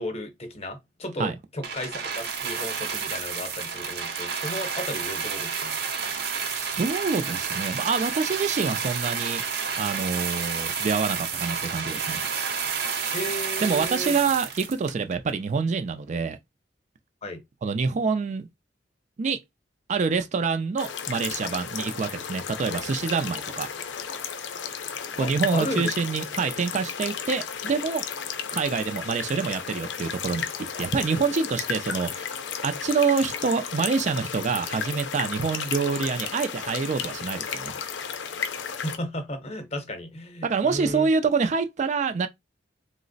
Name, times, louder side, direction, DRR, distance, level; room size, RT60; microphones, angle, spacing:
voice 1, 0.0-5.8 13.1-14.2 17.2-17.4 25.2-25.9 38.8-41.1, left 1 dB, 35° left, 0.8 m, -34 dB
sound 1, 1.6-15.3 16.1-16.2, right 6 dB, 60° right, 0.7 m, -30 dB
voice 2, 6.5-9.4 9.8-12.2 13.6-16.4 17.6-18.5 19.2-19.4 19.9-23.7 25.2-28.0 28.5-30.5 30.8-32.3 32.6-37.9 40.4-42.3, right 5 dB, 40° right, 0.4 m, -26 dB
sound 2, 20.8-39.0, left 7 dB, 75° left, 0.5 m, -33 dB
3.1 x 2.0 x 3.9 m
head